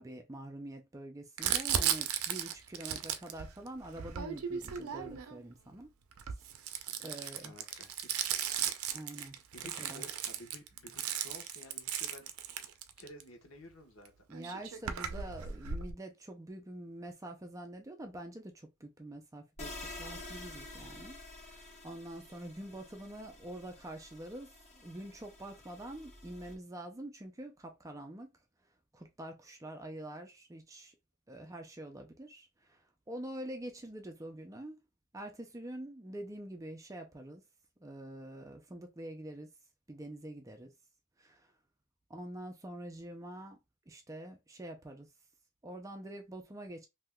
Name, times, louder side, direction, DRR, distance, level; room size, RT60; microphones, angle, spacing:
voice 1, 0.0-5.9 7.0-7.5 8.9-9.4 9.8-10.0 14.3-28.3 28.9-30.9 31.3-34.8 35.1-37.4 37.8-39.5 39.9-40.7 41.2-41.5 42.1-43.6 43.9-45.1 45.6-46.9, right 1 dB, 15° right, 0.4 m, -46 dB
Crumpling crinkling, 1.4-5.4 6.1-13.2 14.1-14.2 14.3-15.9, right 9 dB, 85° right, 0.5 m, -36 dB
voice 2, 6.9-8.1 9.5-12.3 13.0-14.1, left 1 dB, 70° left, 1.1 m, -53 dB
sound 1, 19.6-26.6, left 2 dB, 30° left, 0.9 m, -49 dB
3.6 x 2.7 x 2.2 m
head